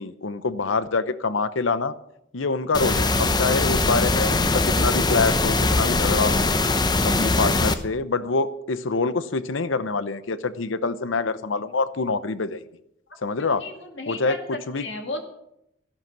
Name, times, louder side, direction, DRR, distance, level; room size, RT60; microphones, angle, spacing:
voice 1, 0.0-1.9 2.3-6.5 7.0-12.6 13.2-13.6 14.1-14.8, left 4 dB, 85° left, 14 dB, 0.8 m, -26 dB
sound 1, 2.7-7.7, left 2 dB, 20° left, 0.7 m, -21 dB
voice 2, 13.4-15.3, left 2 dB, 65° left, 4 dB, 2.2 m, -34 dB
13.5 x 11.5 x 6.0 m, 0.80 s
head